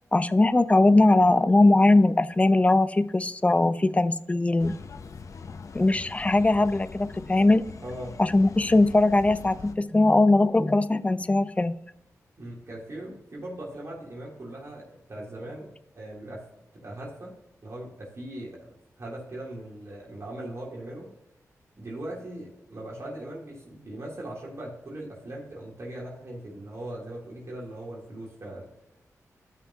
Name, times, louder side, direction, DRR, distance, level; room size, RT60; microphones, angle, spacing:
voice 1, 0.1-4.8 5.7-7.6 8.2-11.7, left 2 dB, 20° left, 14 dB, 0.5 m, -20 dB
sound 1, 4.6-9.8, left 5 dB, 60° left, 0.7 m, -42 dB
voice 2, 7.8-8.1 12.4-15.7 15.9-16.4 16.7-17.3 17.6-18.7 19.0-21.1 21.8-28.7, right 1 dB, 50° right, -5 dB, 3.1 m, -39 dB
14.0 x 5.8 x 2.8 m, 0.87 s
cardioid pair, 70°, 6 cm